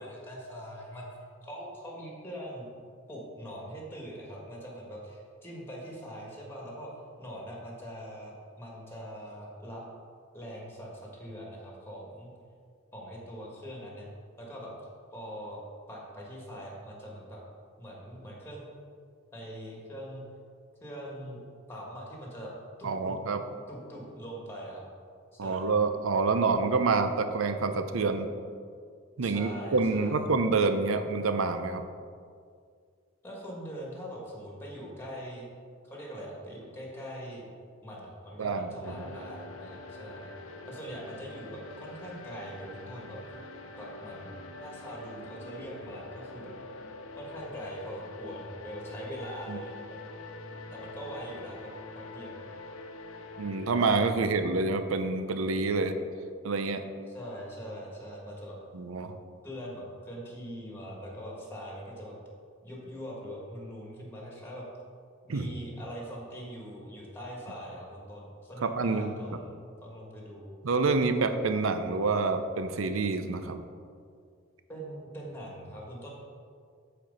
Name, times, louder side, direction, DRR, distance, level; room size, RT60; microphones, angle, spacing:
voice 1, 0.0-2.7 3.1-6.9 7.2-9.8 10.3-12.3 12.9-14.1 14.4-14.7 15.1-15.6 15.9-17.4 17.8-18.6 19.3-20.2 20.8-21.4 21.7-22.5 22.8-23.1 23.7-24.9 25.3-25.7 29.2-30.3 33.2-35.5 35.8-37.4 37.8-40.3 40.6-43.2 43.8-46.5 47.2-49.8 50.7-52.4 57.1-58.6 59.4-62.2 62.6-64.6 65.3-70.5 74.7-76.1, equal, 10° left, -3 dB, 1.5 m, -42 dB
voice 2, 22.8-23.4 25.4-28.3 29.2-31.8 38.4-39.0 49.5-49.6 53.4-55.9 56.4-56.8 58.7-59.1 65.3-65.5 68.6-69.1 70.6-73.6, right 4 dB, 90° right, 8 dB, 0.6 m, -27 dB
sound 1, 38.8-53.9, left 2 dB, 90° left, 0.7 m, -45 dB
7.6 x 4.4 x 5.2 m, 2.2 s
head